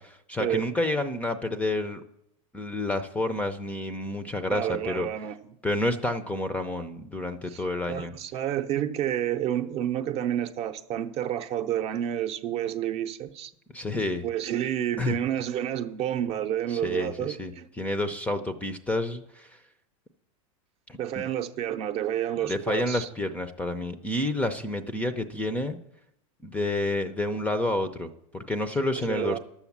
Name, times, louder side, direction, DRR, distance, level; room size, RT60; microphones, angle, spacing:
voice 1, 0.0-2.0 2.5-5.1 5.6-8.1 13.7-14.2 15.0-15.2 16.7-19.5 20.9-21.2 22.4-25.8 26.4-29.4, left 2 dB, 10° left, 0.5 m, -29 dB
voice 2, 4.5-5.6 7.5-7.6 7.9-13.5 14.2-17.7 21.0-23.1 29.0-29.4, right 11 dB, 35° right, 0.7 m, -29 dB
11.5 x 7.1 x 7.2 m
supercardioid pair, 140°, 17 cm